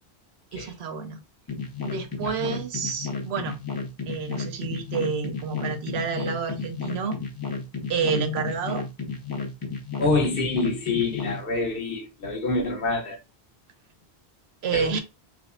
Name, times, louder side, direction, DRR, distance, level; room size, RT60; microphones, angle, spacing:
voice 1, 0.5-1.2 1.8-3.6 4.1-7.2 7.9-8.9 14.6-15.0, right 5 dB, 70° right, 0.8 m, -29 dB
sound 1, 1.5-11.4, left 4 dB, 25° left, 0.5 m, -33 dB
voice 2, 10.0-13.2 14.7-15.0, left 3 dB, 60° left, 1.0 m, -26 dB
4.7 x 2.0 x 2.4 m
omnidirectional pair, 1.1 m